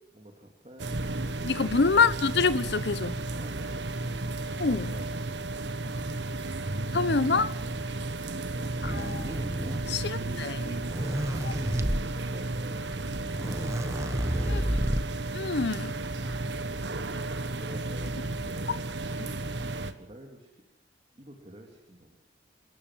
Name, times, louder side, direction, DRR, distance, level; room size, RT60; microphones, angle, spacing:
voice 1, 0.1-1.8 3.4-4.0 4.6-5.2 7.7-7.8 9.6-13.4 14.1-14.7 17.5-18.9 19.6-20.6 21.2-22.2, equal, 35° right, 3.1 m, -48 dB
sound 1, 0.8-19.9, right 2 dB, 75° right, 1.5 m, -33 dB
voice 2, 1.4-3.2 4.6-4.9 6.9-7.5 8.8-9.3 9.9-10.5 11.4-11.5 14.5-14.6 15.3-15.9, left 4 dB, 65° left, 1.0 m, -26 dB
sound 2, 8.8-10.0 10.7-12.0 12.9-13.0 13.1-15.2, equal, 15° right, 1.2 m, -31 dB
29.0 x 13.5 x 7.7 m
head